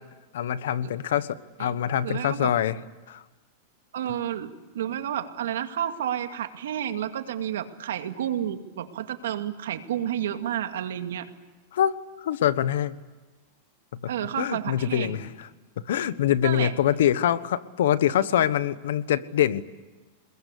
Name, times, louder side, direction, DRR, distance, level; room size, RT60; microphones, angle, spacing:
voice 1, 0.3-2.8 3.1-3.2 11.7-13.0 14.0-14.1 14.4-15.5 15.9-19.6, left 11 dB, 80° left, 15 dB, 1.3 m, -24 dB
voice 2, 2.0-2.5 3.9-11.3 14.1-15.2 16.4-16.7, right 10 dB, 90° right, 7 dB, 2.2 m, -30 dB
29.0 x 21.0 x 8.4 m, 1.2 s
supercardioid pair, 155°, 0 cm